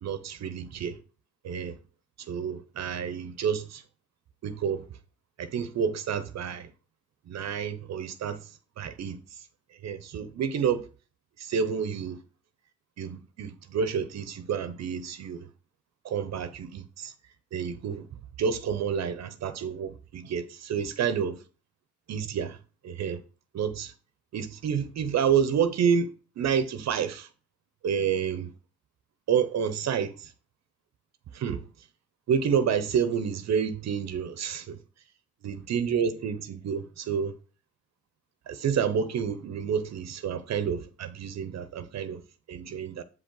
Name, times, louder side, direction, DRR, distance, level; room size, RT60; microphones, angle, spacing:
voice 1, 0.0-1.0 1.4-1.8 2.3-3.8 4.4-4.9 5.4-6.7 7.3-8.4 8.8-9.2 9.8-10.9 11.4-12.2 13.0-15.5 16.0-17.1 17.5-18.1 18.4-21.4 22.1-22.6 22.8-23.2 23.5-23.9 24.3-26.1 26.4-27.3 27.8-28.5 29.3-30.3 31.3-31.6 32.3-34.8 35.4-37.3 38.5-42.2 42.5-43.0, right 7 dB, 60° right, 0.8 m, -29 dB
7.6 x 5.2 x 3.9 m
cardioid pair, 90°, 30 cm